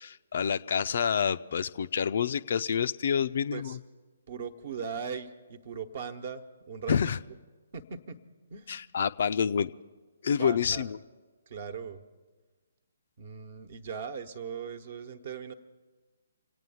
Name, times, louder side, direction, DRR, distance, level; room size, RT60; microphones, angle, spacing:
voice 1, 0.0-3.8 6.9-7.2 8.7-9.7 10.2-11.0, left 7 dB, 50° left, 12 dB, 0.4 m, -28 dB
voice 2, 4.3-6.9 7.7-8.2 8.5-8.7 10.4-10.9 11.5-12.0 13.2-15.5, right 6 dB, 45° right, 10 dB, 1.1 m, -39 dB
26.5 x 9.1 x 5.7 m, 1.3 s
figure-of-eight pair, 130°, 0 cm